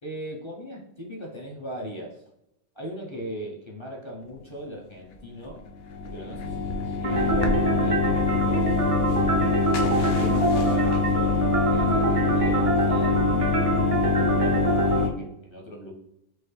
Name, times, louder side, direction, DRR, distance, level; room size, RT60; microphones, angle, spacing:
voice 1, 0.0-2.2 2.7-5.6 6.1-9.6 10.2-11.4 11.7-13.2 13.7-15.9, equal, 30° left, -2 dB, 0.7 m, -38 dB
sound 1, 5.4-15.1, left 4 dB, 65° left, 0.7 m, -24 dB
sound 2, 7.0-15.0, right 4 dB, 60° right, 0.3 m, -26 dB
4.6 x 2.7 x 3.2 m, 0.80 s
omnidirectional pair, 1.3 m